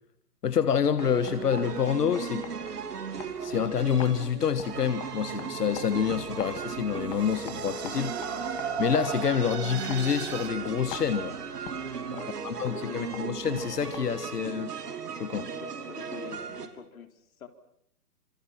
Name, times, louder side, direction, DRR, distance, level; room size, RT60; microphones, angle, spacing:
voice 1, 0.4-2.4 3.4-8.1 8.8-11.4 12.4-14.7 15.2-15.4, left 7 dB, 85° left, 1.6 m, -27 dB
sound 1, 0.7-14.4, left 9 dB, 15° left, 2.0 m, -47 dB
sound 2, 1.0-16.7, right 6 dB, 85° right, 3.4 m, -37 dB
sound 3, 4.6-10.5, right 7 dB, 45° right, 3.0 m, -37 dB
voice 2, 12.1-13.2 14.3-14.4 15.3-17.5, left 7 dB, 65° left, 4.0 m, -45 dB
27.0 x 26.5 x 5.9 m
hypercardioid pair, 170°, 46 cm